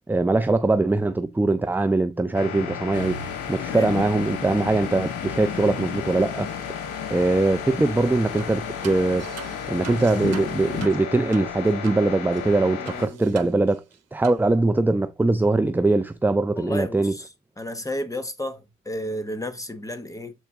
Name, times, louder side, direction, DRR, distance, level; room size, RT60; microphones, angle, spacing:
voice 1, 0.1-6.7 7.1-9.3 9.7-13.8 14.1-17.2, right 2 dB, 5° right, 0.4 m, -22 dB
sound 1, 2.3-13.1, left 7 dB, 85° left, 1.5 m, -34 dB
Thunder, 2.9-10.9, left 6 dB, 50° left, 1.2 m, -36 dB
sound 2, 8.4-8.6 8.8-12.0 12.3-12.4 12.9-14.0 14.2-14.4, right 9 dB, 55° right, 1.0 m, -41 dB
voice 2, 12.8-13.2 16.6-17.3 17.6-20.3, equal, 10° left, 1.1 m, -32 dB
7.2 x 3.9 x 3.6 m
cardioid pair, 90°, 30 cm